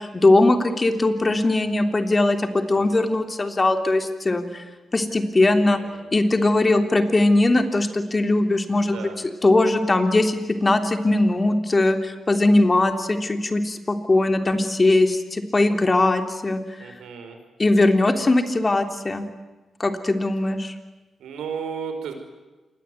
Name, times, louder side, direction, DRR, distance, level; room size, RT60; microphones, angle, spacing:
voice 1, 0.0-4.6 4.9-5.8 6.1-9.1 9.4-16.6 17.6-19.2 19.8-20.7, left 2 dB, 30° left, 6 dB, 3.5 m, -20 dB
voice 2, 5.4-6.1 8.9-9.2 16.8-17.4 21.2-22.1, right 6 dB, 85° right, 6 dB, 5.4 m, -34 dB
28.0 x 21.5 x 9.5 m, 1.2 s
cardioid pair, 70°, 0 cm